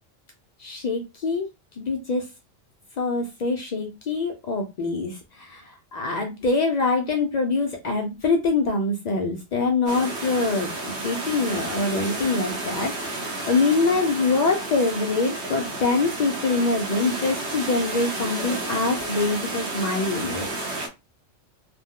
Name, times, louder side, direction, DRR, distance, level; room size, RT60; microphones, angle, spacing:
voice 1, 0.6-1.5 1.8-2.3 3.0-20.7, left 3 dB, 70° left, 3 dB, 0.4 m, -24 dB
sound 1, 9.9-20.9, right 2 dB, 65° right, 1.0 m, -31 dB
2.5 x 2.0 x 3.6 m, 0.25 s
omnidirectional pair, 1.3 m